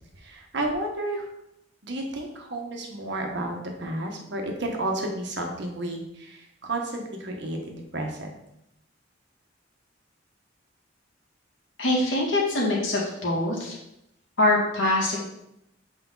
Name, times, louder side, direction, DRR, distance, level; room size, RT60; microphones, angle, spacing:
voice 1, 0.1-1.3 1.8-8.3, right 1 dB, 65° right, 2 dB, 1.3 m, -32 dB
voice 2, 11.8-13.7 14.4-15.2, left 1 dB, 85° left, -5 dB, 2.2 m, -23 dB
7.1 x 5.2 x 4.0 m, 0.82 s
head